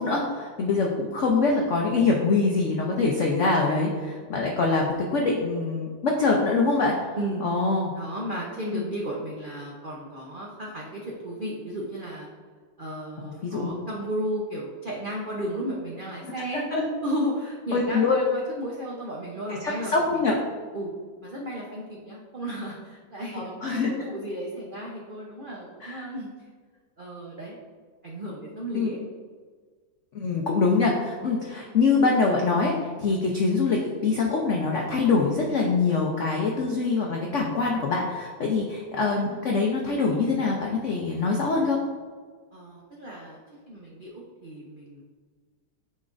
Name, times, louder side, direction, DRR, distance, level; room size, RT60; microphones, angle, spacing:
voice 1, 0.0-7.1 7.4-7.9 8.7-8.9 13.2-13.7 16.5-16.8 17.7-18.2 19.5-20.4 23.3-23.9 25.8-26.1 28.7-28.9 30.1-41.8, left 4 dB, 70° left, -1 dB, 0.7 m, -24 dB
voice 2, 7.9-12.3 12.8-16.7 17.0-20.2 20.7-20.9 21.2-26.3 27.0-27.6 28.0-29.0 38.4-38.5 42.5-43.4 43.7-45.0, right 1 dB, 85° right, -4 dB, 0.4 m, -34 dB
10.0 x 4.3 x 2.5 m, 1.5 s
omnidirectional pair, 2.1 m